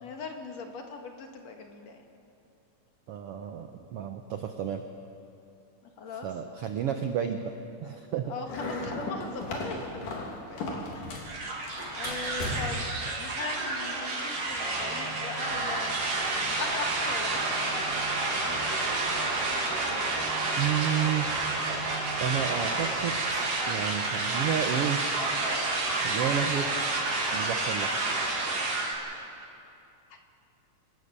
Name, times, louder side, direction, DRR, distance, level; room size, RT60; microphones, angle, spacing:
voice 1, 0.0-2.0 5.8-6.3 8.2-18.1 18.4-18.9 30.1-30.2, left 4 dB, 60° left, 3 dB, 2.6 m, -40 dB
voice 2, 3.1-4.8 6.2-7.5 7.8-8.3 20.6-21.3 22.2-25.0 26.0-26.7 27.3-27.9, right 9 dB, 75° right, 6 dB, 1.4 m, -31 dB
sound 1, 8.5-11.3 11.6-12.9, left 2 dB, 75° left, 4.6 m, -36 dB
sound 2, 11.2-28.9, right 2 dB, 50° right, 3.5 m, -30 dB
sound 3, 14.5-23.4, right 5 dB, ahead, 3.9 m, -46 dB
27.0 x 16.0 x 6.8 m, 2.6 s
omnidirectional pair, 3.8 m